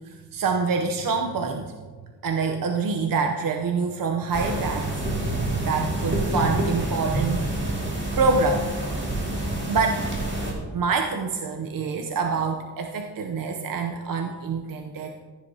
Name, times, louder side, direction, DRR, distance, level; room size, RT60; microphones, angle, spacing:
voice 1, 0.0-1.7 2.2-5.2 5.6-7.7 8.2-8.7 9.7-10.1 10.7-15.1, right 4 dB, 55° right, 3 dB, 0.7 m, -26 dB
sound 1, 4.3-10.5, right 1 dB, 25° right, 2.2 m, -27 dB
15.0 x 10.0 x 2.8 m, 1.4 s
wide cardioid pair, 180°, 41 cm